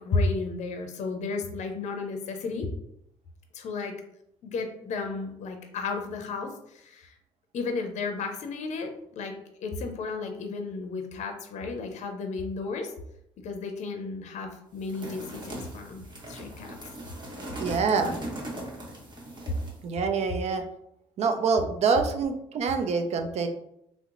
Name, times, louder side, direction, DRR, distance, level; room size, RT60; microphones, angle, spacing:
voice 1, 0.0-2.7 3.5-3.9 4.4-7.1 7.5-9.3 9.6-12.9 13.4-16.8, left 3 dB, 60° left, 5 dB, 0.5 m, -33 dB
sound 1, 14.8-19.8, right 1 dB, 35° right, 1.1 m, -39 dB
voice 2, 17.6-18.2 19.8-20.6 21.2-23.5, right 5 dB, 55° right, 6 dB, 0.4 m, -26 dB
2.8 x 2.0 x 3.7 m, 0.77 s
supercardioid pair, 70°, 14 cm